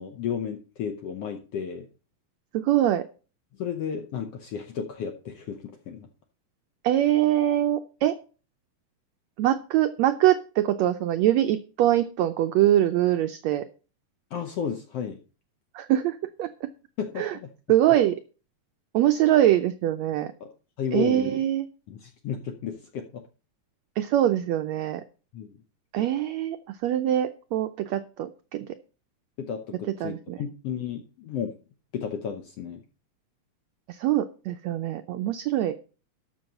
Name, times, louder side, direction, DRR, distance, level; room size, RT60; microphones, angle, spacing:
voice 1, 0.0-1.9 3.6-6.1 14.3-15.2 17.0-17.5 20.4-20.5 20.8-21.3 21.9-23.2 25.3-25.5 29.4-31.5 31.9-32.8, left 7 dB, 70° left, 6 dB, 1.5 m, -33 dB
voice 2, 2.5-3.0 6.8-8.1 9.4-13.6 15.7-16.7 17.2-17.3 17.7-18.2 18.9-20.3 20.9-21.7 24.0-25.0 25.9-28.7 30.0-30.4 33.9-35.7, right 12 dB, 90° right, 9 dB, 1.5 m, -23 dB
12.5 x 6.1 x 5.3 m, 0.36 s
omnidirectional pair, 3.9 m